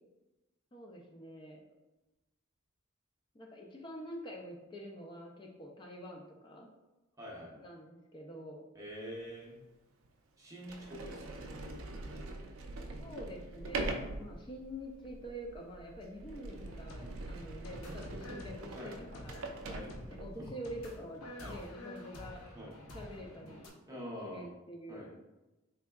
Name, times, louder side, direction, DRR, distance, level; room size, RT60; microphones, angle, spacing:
voice 1, 0.7-1.6 3.3-6.7 7.5-8.6 13.0-19.4 20.0-22.4 22.9-23.6 24.2-25.2, equal, 25° left, 0 dB, 0.4 m, -46 dB
voice 2, 7.2-7.5 8.7-9.6 10.4-11.5 14.4-14.5 17.0-17.2 18.7-19.0 19.6-20.0 20.4-20.5 21.4-21.6 22.5-22.7 23.9-24.5 24.9-25.1, equal, 15° right, -3 dB, 0.7 m, -45 dB
Sliding door, 9.2-9.3 10.0-10.1 10.6-20.5, right 2 dB, 65° right, 0.4 m, -43 dB
sound 1, 16.6-23.7, left 1 dB, 85° left, 0.7 m, -49 dB
3.6 x 3.3 x 2.2 m, 1.0 s
head